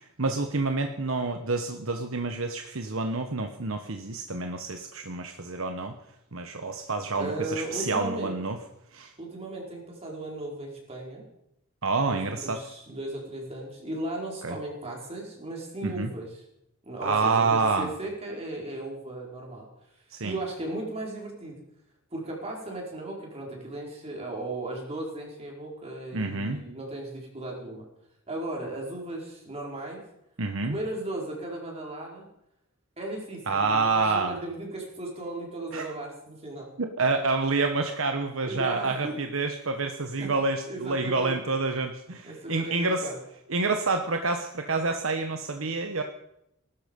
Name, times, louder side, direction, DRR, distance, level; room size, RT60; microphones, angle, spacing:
voice 1, 0.0-5.9 6.3-8.6 8.9-9.1 11.8-12.6 14.4-14.6 15.8-16.1 17.0-17.9 20.1-20.3 26.1-26.6 30.4-30.8 33.5-34.4 35.7-35.9 36.8-43.1 43.5-46.0, right 3 dB, 65° right, 5 dB, 1.2 m, -28 dB
voice 2, 7.2-8.3 9.2-11.2 12.1-16.4 16.8-19.7 20.2-21.6 22.1-27.9 28.3-30.0 30.6-32.3 33.0-36.7 38.4-39.1 40.2-40.3 40.7-41.4 42.2-43.2, right 2 dB, 30° right, -1 dB, 4.5 m, -36 dB
18.0 x 13.0 x 5.3 m, 0.80 s
head